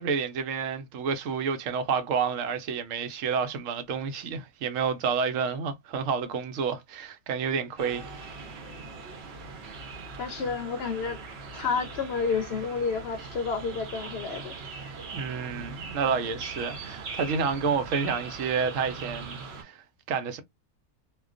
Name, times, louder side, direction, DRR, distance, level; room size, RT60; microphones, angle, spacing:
voice 1, 0.0-8.0 15.1-20.4, right 6 dB, 85° right, 1.0 m, -29 dB
sound 1, 7.8-19.6, right 4 dB, 60° right, 0.8 m, -40 dB
voice 2, 10.2-11.2 11.5-14.6, left 5 dB, 65° left, 0.7 m, -30 dB
2.3 x 2.2 x 2.4 m
omnidirectional pair, 1.3 m